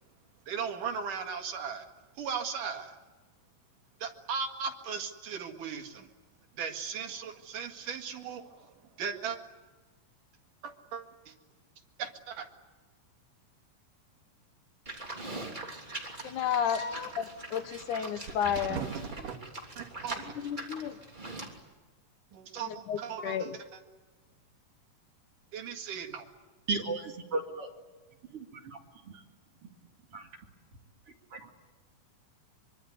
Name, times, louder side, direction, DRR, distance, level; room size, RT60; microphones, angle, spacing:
voice 1, 0.5-1.9 2.2-3.0 4.0-6.1 6.6-8.7 9.0-9.4 10.6-11.3 12.0-12.5 18.5-19.4 19.8-20.4 22.3-23.6 25.5-26.3, right 6 dB, 75° right, 4 dB, 3.6 m, -37 dB
Livestock farm animals working animals, 14.9-21.6, right 2 dB, 15° right, 2.9 m, -42 dB
voice 2, 16.2-18.8 20.4-21.0 22.7-23.6, left 8 dB, 70° left, 10 dB, 2.7 m, -32 dB
voice 3, 26.7-27.7 28.3-28.8 30.1-30.3 31.3-31.5, right 3 dB, 45° right, 2 dB, 3.1 m, -34 dB
24.5 x 24.0 x 9.5 m, 1.3 s
omnidirectional pair, 3.8 m